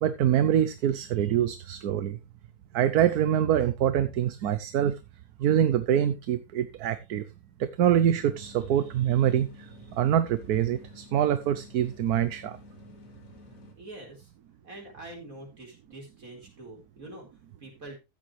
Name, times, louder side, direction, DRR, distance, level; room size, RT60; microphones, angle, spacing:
voice 1, 0.0-2.2 2.7-5.0 5.4-7.2 7.6-12.6, right 10 dB, 75° right, 12 dB, 1.3 m, -25 dB
sound 1, 8.1-13.7, left 2 dB, 55° left, 2.5 m, -51 dB
voice 2, 13.7-14.3 14.6-18.0, right 2 dB, 60° right, 0 dB, 4.9 m, -45 dB
14.0 x 8.8 x 3.2 m, 0.24 s
omnidirectional pair, 1.7 m